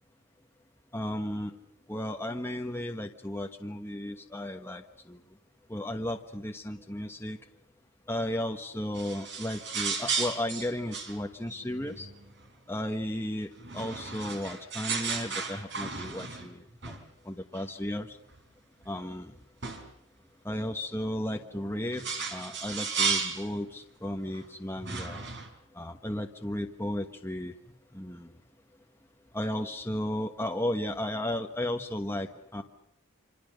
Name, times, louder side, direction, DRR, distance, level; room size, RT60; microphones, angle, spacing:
voice 1, 0.9-1.6 1.9-5.2 5.7-7.4 8.1-12.1 12.7-17.0 17.2-18.2 18.8-19.4 20.4-22.0 22.3-25.2 25.7-27.5 27.9-28.3 29.3-32.6, left 1 dB, 10° left, 3 dB, 1.2 m, -34 dB
sound 1, 8.9-12.5 13.6-16.5 16.8-17.0 17.5-17.6 18.3-18.4 18.8-18.9 19.6-19.9 21.5-23.5 24.3-24.4 24.8-25.5, right 5 dB, 55° right, 4.2 m, -34 dB
27.0 x 26.0 x 6.6 m, 0.75 s
head